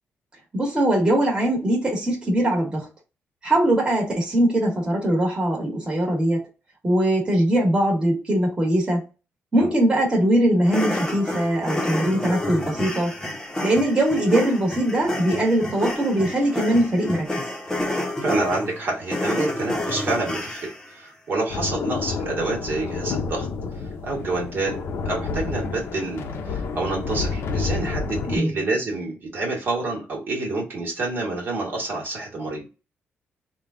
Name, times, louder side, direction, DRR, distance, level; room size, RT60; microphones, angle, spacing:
voice 1, 0.5-2.9 3.4-6.4 6.8-9.0 9.5-13.1 13.6-17.4 28.3-28.6, right 1 dB, 20° right, 1.5 m, -21 dB
sound 1, 10.7-20.9, left 1 dB, 10° left, 0.9 m, -29 dB
voice 2, 18.2-23.5 24.0-24.8 25.0-32.6, right 2 dB, 50° right, 1.5 m, -28 dB
sound 2, 21.5-28.4, left 4 dB, 70° left, 0.7 m, -29 dB
3.5 x 2.3 x 3.7 m
cardioid pair, 115°, 4 cm